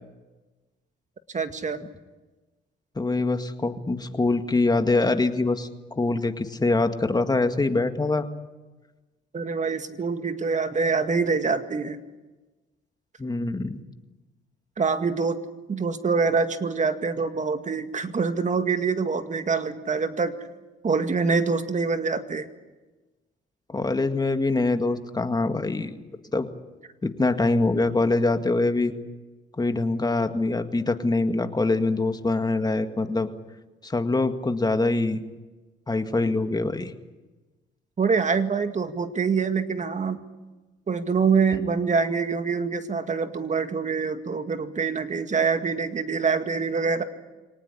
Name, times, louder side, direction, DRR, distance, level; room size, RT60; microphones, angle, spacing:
voice 1, 1.3-1.8 9.3-12.0 14.8-15.4 15.7-20.4 20.8-22.5 38.0-40.2 40.9-47.0, right 5 dB, 35° right, 8 dB, 2.1 m, -25 dB
voice 2, 3.0-8.3 13.2-13.8 23.7-26.0 26.3-26.5 27.0-28.9 29.6-33.3 33.8-35.2 35.9-36.9, left 2 dB, 20° left, 8 dB, 1.9 m, -24 dB
24.5 x 19.0 x 9.9 m, 1.2 s
cardioid pair, 90°, 20 cm